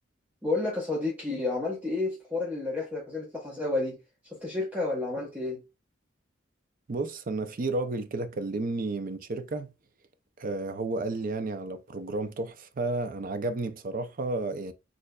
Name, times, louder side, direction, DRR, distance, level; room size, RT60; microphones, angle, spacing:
voice 1, 0.4-4.0 4.3-5.6, left 2 dB, 10° right, 0.8 m, -30 dB
voice 2, 6.9-9.7 10.4-14.7, right 2 dB, 45° right, 0.5 m, -32 dB
6.5 x 2.5 x 2.3 m
head